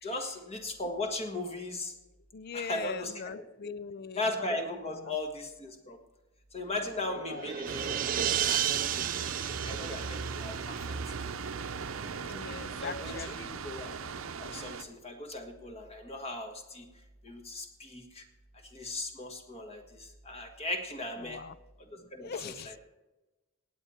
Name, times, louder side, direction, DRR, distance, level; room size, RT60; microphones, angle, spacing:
voice 1, 0.0-1.9 2.5-3.7 4.1-6.0 6.5-8.0 8.4-9.3 9.6-10.8 12.8-13.3 13.6-14.0 14.4-16.8 17.2-18.2 18.7-21.4 21.9-22.8, left 2 dB, 30° left, 6 dB, 1.5 m, -37 dB
voice 2, 2.3-4.3 4.9-5.2 7.2-7.5 12.3-13.6 21.2-21.6 22.2-22.8, left 5 dB, 50° left, 17 dB, 0.4 m, -41 dB
sound 1, 6.7-11.3, right 10 dB, 40° right, 0.4 m, -33 dB
sound 2, 7.7-14.8, right 5 dB, 80° right, 0.7 m, -38 dB
17.0 x 8.7 x 4.4 m, 1.1 s
head